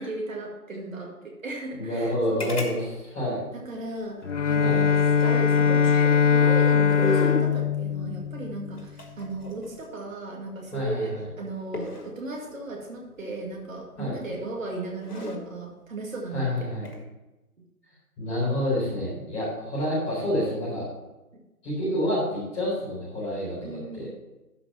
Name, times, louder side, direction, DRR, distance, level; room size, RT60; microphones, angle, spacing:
voice 1, 0.0-2.5 3.5-5.9 6.2-16.4 21.3-21.4 23.6-24.1, right 2 dB, 60° right, -1 dB, 2.3 m, -36 dB
voice 2, 1.8-3.4 4.6-4.8 10.7-11.3 14.0-14.1 16.3-16.8 18.2-20.8 21.6-24.1, left 1 dB, 10° left, -10 dB, 4.0 m, -28 dB
sound 1, 2.4-2.8 3.0-3.1 5.0-6.3 6.9-7.5 8.8-10.0 11.7-12.1 14.0-14.3 14.9-15.4 16.7-17.0, left 3 dB, 90° left, 2.2 m, -32 dB
Bowed string instrument, 4.2-8.9, left 6 dB, 55° left, 0.5 m, -21 dB
12.0 x 5.2 x 5.6 m, 1.0 s
figure-of-eight pair, 160°, 45 cm